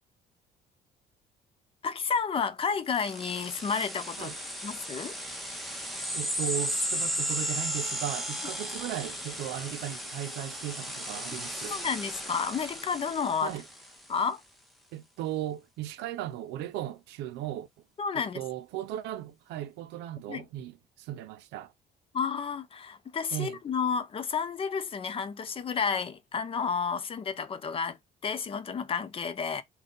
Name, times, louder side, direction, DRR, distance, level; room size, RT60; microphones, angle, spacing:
voice 1, 1.8-4.3 4.6-5.2 11.7-13.5 14.1-14.4 18.0-18.4 20.3-20.4 22.1-28.0 28.2-29.6, left 6 dB, 35° left, 0.6 m, -31 dB
sound 1, 2.9-14.0, equal, ahead, 1.0 m, -35 dB
voice 2, 6.1-11.7 13.4-13.7 14.9-17.7 18.1-21.7 23.3-23.6, right 12 dB, 90° right, 0.5 m, -37 dB
3.6 x 2.3 x 3.8 m
cardioid pair, 110°, 17 cm